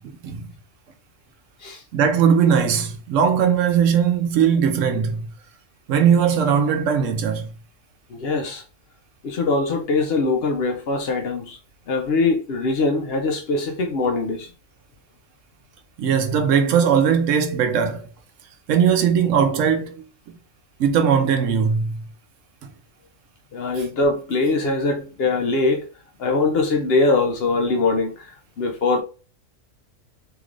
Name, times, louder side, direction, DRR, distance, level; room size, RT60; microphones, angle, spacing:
voice 1, 0.0-0.4 1.9-5.3 5.9-7.5 16.0-18.1 18.7-20.0 20.8-21.9, right 7 dB, 75° right, 1.0 m, -19 dB
voice 2, 8.1-8.6 9.2-11.6 11.9-14.5 23.5-25.9 26.2-29.0, left 3 dB, 60° left, 0.7 m, -22 dB
3.1 x 2.9 x 2.4 m
omnidirectional pair, 1.3 m